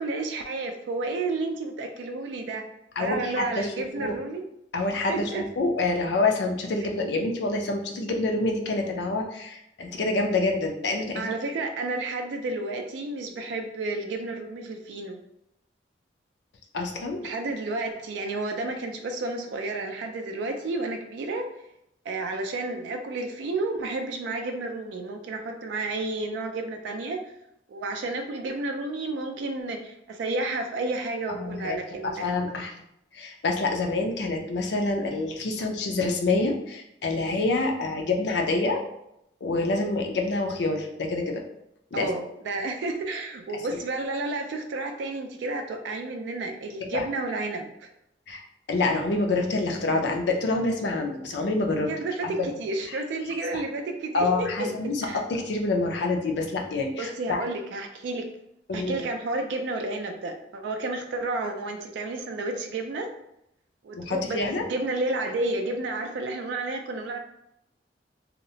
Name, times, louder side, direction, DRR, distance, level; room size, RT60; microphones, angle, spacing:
voice 1, 0.0-2.6 3.0-4.4 5.1-5.4 11.1-15.2 17.2-21.5 22.1-27.2 27.7-32.3 41.9-47.9 51.9-54.7 55.0-55.2 57.0-58.3 58.7-63.1 63.8-67.2, right 2 dB, 80° right, 4 dB, 0.3 m, -31 dB
voice 2, 3.0-3.7 4.0-4.2 4.7-11.3 16.7-17.2 31.3-31.8 32.0-32.7 33.1-38.8 39.4-41.4 41.9-42.1 46.9-47.1 48.3-48.4 48.7-51.9 52.2-52.3 53.5-53.6 54.1-57.4 58.7-59.0 64.0-64.6, left 2 dB, 70° left, 2 dB, 0.4 m, -27 dB
2.8 x 2.0 x 2.6 m, 0.81 s
head